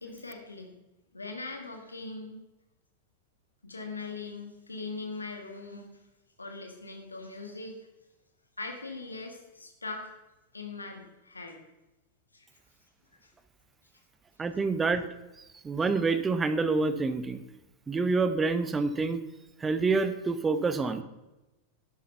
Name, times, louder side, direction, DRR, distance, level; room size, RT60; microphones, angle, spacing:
voice 1, 0.0-0.8 1.1-2.4 3.6-6.0 6.4-7.9 8.6-10.1 10.5-11.6 12.3-12.5 13.2-13.3, left 3 dB, 80° left, 3 dB, 1.7 m, -41 dB
voice 2, 14.4-15.1 15.6-17.4 17.9-19.2 19.6-21.0, right 4 dB, 15° right, 11 dB, 1.0 m, -27 dB
11.5 x 8.4 x 5.7 m, 1.0 s
figure-of-eight pair, 90°, 0 cm